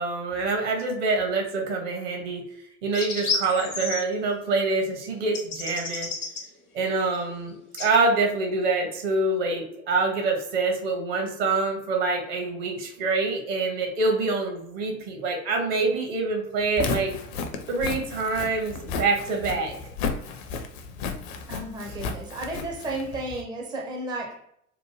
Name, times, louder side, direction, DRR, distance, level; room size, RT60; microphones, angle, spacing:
voice 1, 0.0-2.4 2.8-6.1 6.7-17.1 17.7-19.8 21.8-21.9, right 3 dB, 45° right, 2 dB, 0.8 m, -26 dB
sound 1, 2.9-4.0 5.3-6.4 7.8-7.9, left 3 dB, 85° left, 0.9 m, -30 dB
Walk footsteps, 16.6-23.4, left 5 dB, 50° left, 0.5 m, -33 dB
voice 2, 21.5-24.4, right 2 dB, 10° right, 0 dB, 0.4 m, -33 dB
2.9 x 2.1 x 3.0 m, 0.72 s
figure-of-eight pair, 75°, 43 cm